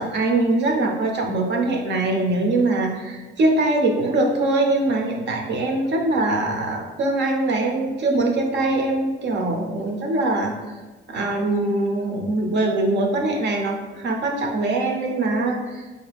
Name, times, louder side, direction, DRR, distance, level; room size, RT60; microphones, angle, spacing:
voice 1, 0.0-10.5 11.1-15.8, right 2 dB, 60° right, 2 dB, 0.8 m, -22 dB
3.9 x 2.8 x 3.4 m, 1.2 s
cardioid pair, 90°, 20 cm